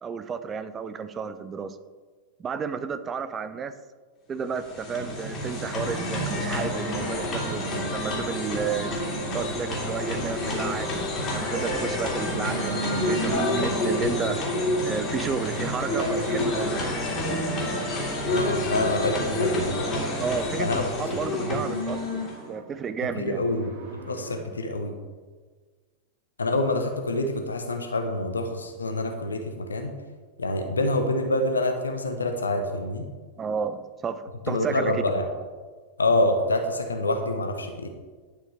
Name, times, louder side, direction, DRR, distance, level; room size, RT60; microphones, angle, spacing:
voice 1, 0.0-1.8 2.4-3.8 4.3-11.0 11.3-14.4 14.8-16.8 20.2-22.2 22.5-23.4 24.5-24.6 33.4-35.0, right 6 dB, 20° right, 11 dB, 0.6 m, -32 dB
sound 1, 4.4-22.5, left 1 dB, 25° left, 3.1 m, -29 dB
sound 2, 5.3-18.5 21.0-24.4, right 2 dB, 55° right, 1.5 m, -37 dB
voice 2, 18.2-20.0 20.6-20.8 21.4-21.6 23.2-23.7 24.1-24.9 26.4-29.9 30.4-33.0 34.5-35.3 36.0-37.9, left 2 dB, 75° left, 5 dB, 0.9 m, -26 dB
10.5 x 5.8 x 4.9 m, 1.5 s
figure-of-eight pair, 90°, 0 cm